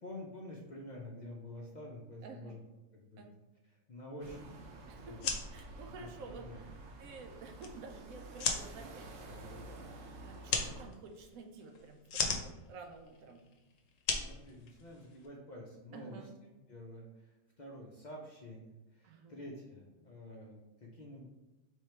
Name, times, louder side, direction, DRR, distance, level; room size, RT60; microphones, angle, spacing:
voice 1, 0.0-2.6 2.9-3.3 3.9-4.5 5.0-5.3 6.0-6.6 14.2-21.3, left 1 dB, 50° left, -2 dB, 0.5 m, -48 dB
voice 2, 2.2-2.5 3.2-3.3 4.9-6.7 7.0-13.4 15.9-16.3 19.0-19.4, right 4 dB, 90° right, 4 dB, 1.1 m, -51 dB
sound 1, 4.2-10.9, right 2 dB, 70° right, 1.0 m, -50 dB
sound 2, 5.0-15.3, left 5 dB, 75° left, 1.0 m, -39 dB
3.6 x 3.3 x 4.3 m, 1.1 s
omnidirectional pair, 1.4 m